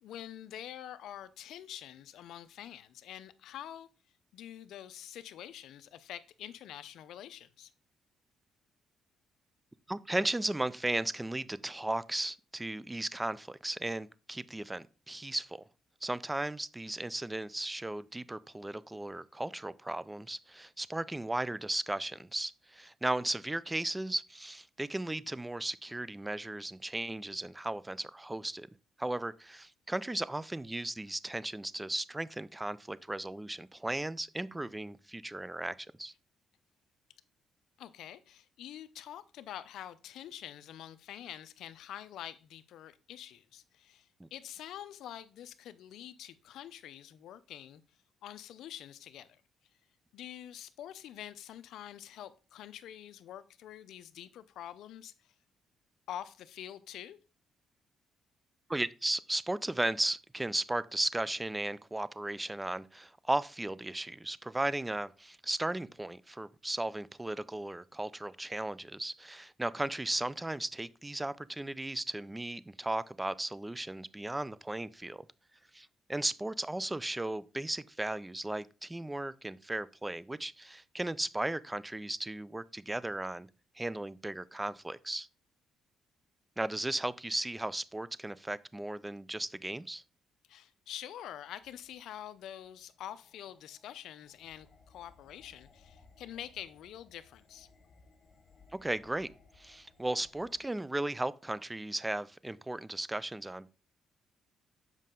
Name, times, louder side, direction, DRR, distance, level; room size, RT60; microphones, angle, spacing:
voice 1, 0.0-3.9 4.3-7.7 37.8-47.8 48.2-49.4 50.1-55.1 56.1-57.2 90.5-97.7, left 11 dB, 80° left, 0.5 m, -46 dB
voice 2, 9.9-15.6 16.0-28.7 29.0-36.1 44.2-44.3 58.7-75.2 75.7-83.5 83.8-85.3 86.6-90.0 98.7-99.3 99.6-103.7, right 1 dB, 10° right, 0.4 m, -36 dB
sound 1, 91.6-100.6, left 4 dB, 50° left, 1.3 m, -63 dB
7.3 x 5.4 x 3.8 m
cardioid pair, 90°, 0 cm